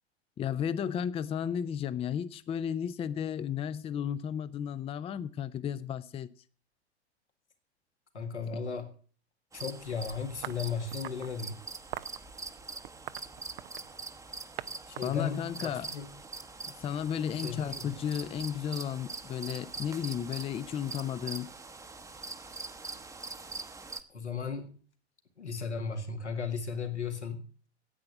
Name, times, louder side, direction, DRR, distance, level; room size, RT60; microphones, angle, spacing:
voice 1, 0.4-6.3 15.0-15.9 16.8-21.5, left 8 dB, 15° left, 0.5 m, -33 dB
voice 2, 8.1-8.9 9.5-11.6 14.9-16.1 17.3-17.9 24.1-24.8 25.4-27.4, left 5 dB, 90° left, 1.9 m, -36 dB
sound 1, 9.5-24.0, right 3 dB, 10° right, 0.9 m, -44 dB
sound 2, 10.4-11.3 11.9-12.2 12.8-14.0 14.6-14.7 15.0-16.4, right 14 dB, 60° right, 0.7 m, -42 dB
9.9 x 8.8 x 7.9 m
figure-of-eight pair, 95°, 33 cm